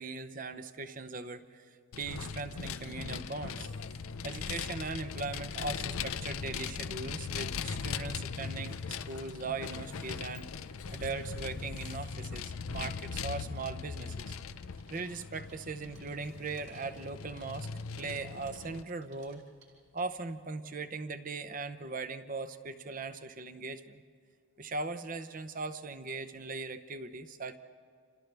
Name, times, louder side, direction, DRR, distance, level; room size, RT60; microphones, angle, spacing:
voice 1, 0.0-1.7 2.0-3.7 4.2-10.5 10.9-14.3 14.9-17.7 18.0-19.4 19.9-24.0 24.6-27.6, right 3 dB, 40° right, 10 dB, 0.8 m, -39 dB
Vehicle, 1.9-18.8, left 6 dB, 85° left, 0.6 m, -39 dB
sound 1, 9.0-20.3, right 3 dB, 80° right, 5.5 m, -64 dB
30.0 x 27.5 x 3.4 m, 2.2 s
head